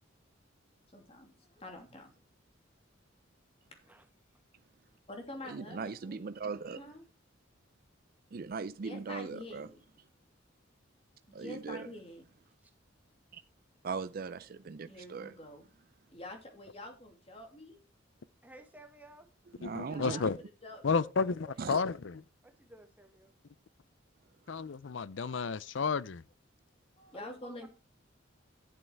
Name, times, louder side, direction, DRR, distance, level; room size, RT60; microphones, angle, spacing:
voice 1, 0.9-2.1 5.1-6.3 6.7-7.0 8.7-9.8 11.3-12.2 14.9-15.7 16.1-17.8 19.9-20.3 20.6-21.5 27.0-27.7, left 1 dB, 30° left, 2.7 m, -47 dB
voice 2, 5.4-6.8 8.3-9.7 11.3-11.9 13.3-13.4 13.8-15.3 19.6-20.2 21.6-21.8, right 4 dB, 50° right, 0.4 m, -39 dB
voice 3, 18.4-19.3 22.4-23.3 27.1-27.7, right 1 dB, 10° right, 1.7 m, -54 dB
voice 4, 19.6-20.4 20.8-22.2 24.5-26.2, left 5 dB, 70° left, 0.5 m, -32 dB
11.5 x 7.8 x 4.6 m
head